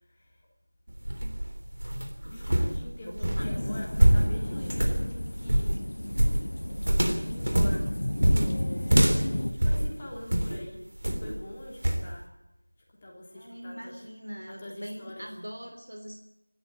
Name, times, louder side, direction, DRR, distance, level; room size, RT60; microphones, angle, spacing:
sound 1, 0.9-10.6 11.0-11.4 11.8-12.1, right 1 dB, 50° right, 3.3 m, -25 dB
voice 1, 2.1-5.7 7.2-7.9 8.4-10.8 11.2-12.3 13.0-14.0 14.5-15.3, left 1 dB, 15° left, -3 dB, 3.1 m, -45 dB
voice 2, 2.9-3.5 13.3-16.2, equal, 75° right, 4 dB, 3.5 m, -42 dB
sound 2, 3.4-9.5, left 1 dB, 45° left, 1.6 m, -33 dB
24.5 x 13.0 x 8.8 m, 0.91 s
figure-of-eight pair, 175°, 0 cm